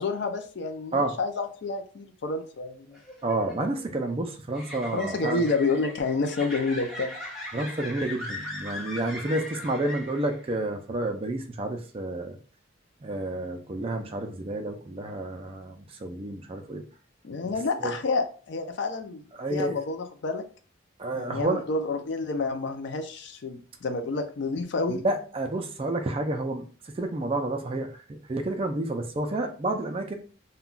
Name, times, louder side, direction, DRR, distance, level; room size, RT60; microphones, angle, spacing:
voice 1, 0.0-3.0 4.9-7.2 17.2-20.4 21.1-25.0, left 3 dB, 55° left, 7 dB, 0.4 m, -29 dB
sound 1, 2.9-10.5, left 1 dB, ahead, 0.8 m, -39 dB
voice 2, 3.2-5.4 7.5-12.4 13.0-16.8 17.8-17.9 19.3-19.8 21.0-21.6 24.9-30.2, right 2 dB, 25° right, 5 dB, 0.3 m, -30 dB
2.2 x 2.2 x 3.7 m, 0.39 s
head